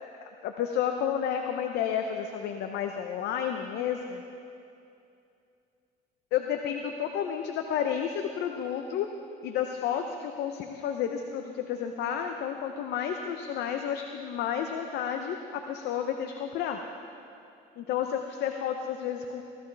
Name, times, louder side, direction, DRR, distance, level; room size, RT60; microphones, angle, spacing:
voice 1, 0.0-4.2 6.3-9.1 9.4-16.8 17.8-19.4, left 8 dB, 75° left, 5 dB, 0.7 m, -31 dB
16.5 x 13.5 x 3.4 m, 2.6 s
cardioid pair, 110°, 17 cm